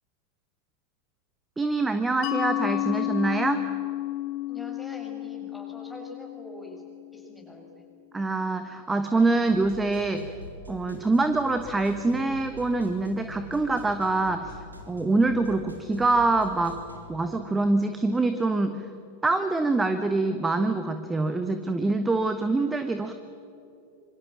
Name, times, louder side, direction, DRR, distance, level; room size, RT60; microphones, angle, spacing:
voice 1, 1.6-3.6 8.1-10.3 10.7-14.6 14.9-16.8 17.1-18.9 19.2-23.1, right 3 dB, 10° right, 9 dB, 1.3 m, -25 dB
Mallet percussion, 2.2-7.6, left 15 dB, 40° left, 3.2 m, -32 dB
voice 2, 4.5-6.8 7.1-7.8, equal, 5° left, 0 dB, 6.1 m, -44 dB
sound 1, 9.4-17.1, left 1 dB, 80° right, 3.3 m, -44 dB
26.5 x 24.5 x 7.4 m, 2.7 s
figure-of-eight pair, 90°, 0 cm